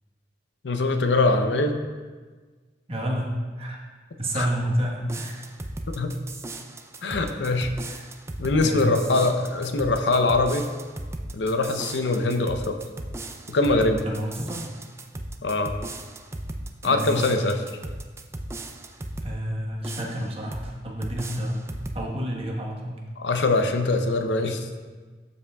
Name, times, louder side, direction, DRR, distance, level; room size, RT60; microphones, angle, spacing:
voice 1, 0.6-1.8 4.3-4.5 6.0-6.1 7.0-7.7 8.4-10.7 11.3-12.8 13.5-14.0 15.4-15.7 16.8-17.6 23.2-24.6, left 2 dB, 80° left, 6 dB, 0.6 m, -23 dB
voice 2, 2.9-3.8 4.2-5.4 7.8-8.0 8.6-8.9 14.0-14.6 16.8-17.3 19.2-21.6 21.9-23.0, equal, 35° right, -2 dB, 1.2 m, -29 dB
sound 1, 5.0-19.4 19.8-20.7 21.0-22.0, right 1 dB, 15° right, 0.4 m, -37 dB
12.0 x 5.5 x 2.3 m, 1.4 s
head